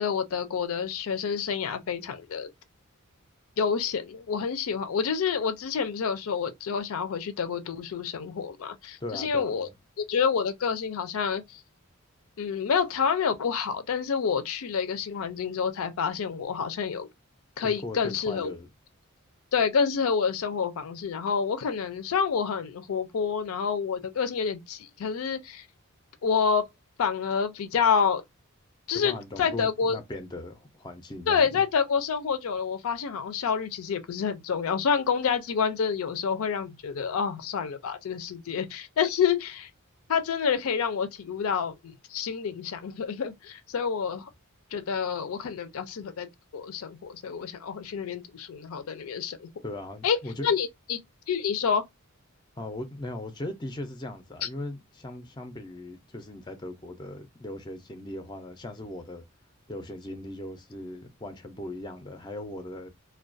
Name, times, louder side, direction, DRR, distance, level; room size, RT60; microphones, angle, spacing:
voice 1, 0.0-2.5 3.6-9.7 10.1-11.6 12.4-17.1 17.6-18.6 19.5-25.7 26.2-26.7 27.0-28.2 28.9-30.0 31.3-39.7 40.1-44.3 44.7-49.5 50.0-51.0 51.3-51.8 54.4-54.5, left 6 dB, 75° left, 0.4 m, -28 dB
voice 2, 9.0-9.7 17.6-18.7 28.9-31.5 49.6-50.5 52.6-59.2 59.7-62.9, left 1 dB, 20° left, 0.4 m, -39 dB
2.3 x 2.2 x 2.5 m
head